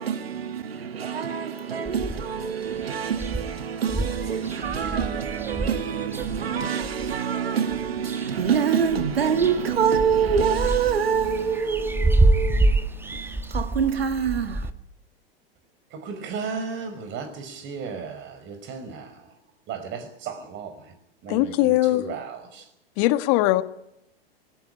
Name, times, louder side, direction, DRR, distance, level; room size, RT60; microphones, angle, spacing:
voice 1, 0.0-14.7, right 7 dB, 80° right, 1.7 m, -26 dB
sound 1, 1.9-2.5 2.8-2.9 3.1-7.2 7.7-8.6 8.8-14.7, right 2 dB, 5° right, 1.5 m, -27 dB
voice 2, 16.0-19.1 19.7-20.7 21.2-21.5 21.9-22.2, right 5 dB, 40° right, 5.7 m, -34 dB
voice 3, 21.3-22.2 23.0-23.6, left 16 dB, 45° left, 1.5 m, -21 dB
20.5 x 18.0 x 9.9 m
hypercardioid pair, 95°, 30 cm